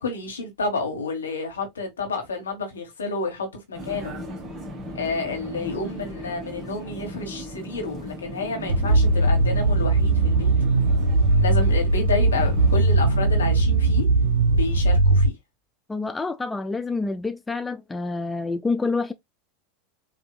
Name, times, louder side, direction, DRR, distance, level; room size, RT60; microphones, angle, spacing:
voice 1, 0.0-4.1 4.9-10.5 11.4-14.1 14.5-15.4, left 3 dB, 85° left, 1.4 m, -30 dB
Vehicle, 3.7-13.0, equal, 30° right, 1.8 m, -38 dB
sound 1, 8.7-15.3, right 2 dB, 85° right, 0.6 m, -19 dB
voice 2, 15.9-19.1, left 3 dB, 15° left, 0.4 m, -27 dB
5.1 x 2.7 x 2.3 m
hypercardioid pair, 85°, 0 cm